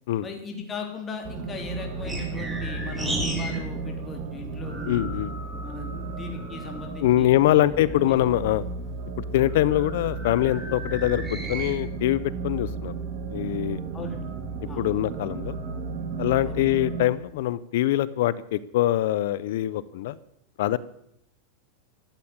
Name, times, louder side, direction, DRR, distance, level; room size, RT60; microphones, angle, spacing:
voice 1, 0.2-5.2 5.6-7.6 7.9-8.2 13.9-14.2 14.7-14.9 16.4-16.6, left 3 dB, 20° left, 2 dB, 3.4 m, -37 dB
sound 1, 1.2-17.1, right 4 dB, 45° right, 2.3 m, -34 dB
sound 2, 1.3-3.7 3.9-7.0 7.5-11.7, equal, 5° right, 3.9 m, -36 dB
voice 2, 4.9-5.3 7.0-8.6 9.3-12.9 13.3-13.8 14.8-15.6 16.2-20.2 20.6-20.8, left 14 dB, 70° left, 18 dB, 0.6 m, -23 dB
13.5 x 8.6 x 9.6 m, 0.77 s
supercardioid pair, 140°, 0 cm